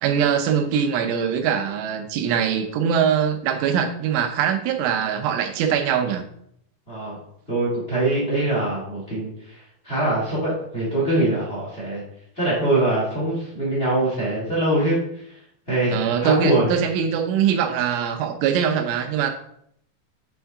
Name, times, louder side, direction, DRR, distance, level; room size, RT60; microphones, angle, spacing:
voice 1, 0.0-6.3 15.9-19.3, right 8 dB, 85° right, 5 dB, 3.3 m, -22 dB
voice 2, 6.9-7.2 7.5-9.3 9.8-12.0 12.3-15.0 15.7-16.7, right 1 dB, 45° left, -6 dB, 0.7 m, -23 dB
7.5 x 3.6 x 4.7 m, 0.72 s
omnidirectional pair, 5.4 m